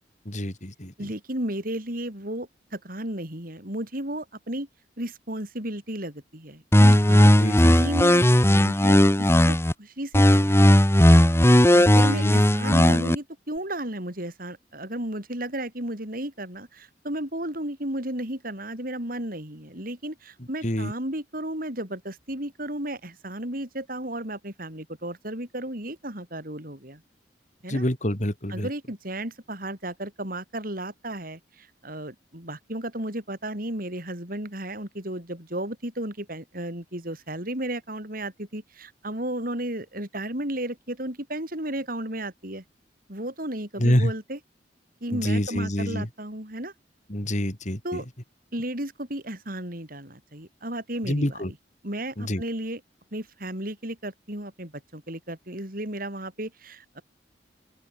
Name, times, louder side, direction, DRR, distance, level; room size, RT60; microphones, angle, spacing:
voice 1, 0.3-1.1 7.4-7.9 11.9-12.4 20.6-20.9 27.7-28.7 43.8-44.1 45.1-46.1 47.1-48.0 51.0-51.5 52.2-52.4, equal, 45° left, 5.4 m, -27 dB
voice 2, 1.0-4.7 5.0-10.8 11.7-27.0 27.6-27.8 28.5-42.6 43.1-44.4 45.0-46.7 47.8-48.1 48.5-51.4 51.8-52.8 53.1-57.0, right 1 dB, 50° right, 7.4 m, -34 dB
sound 1, 6.7-9.7 10.1-13.1, left 1 dB, 15° left, 1.5 m, -17 dB
open air
head